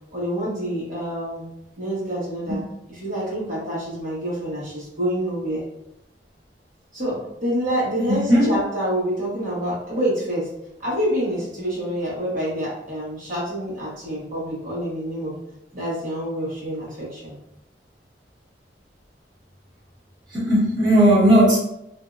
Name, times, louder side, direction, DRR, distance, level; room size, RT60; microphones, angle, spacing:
voice 1, 0.1-1.4 1.8-5.6 6.9-10.5 10.8-15.3 15.7-17.3, equal, 50° right, -8 dB, 1.4 m, -27 dB
voice 2, 8.1-8.6 20.3-21.6, equal, 25° right, -11 dB, 1.4 m, -16 dB
3.5 x 2.7 x 2.5 m, 0.83 s
head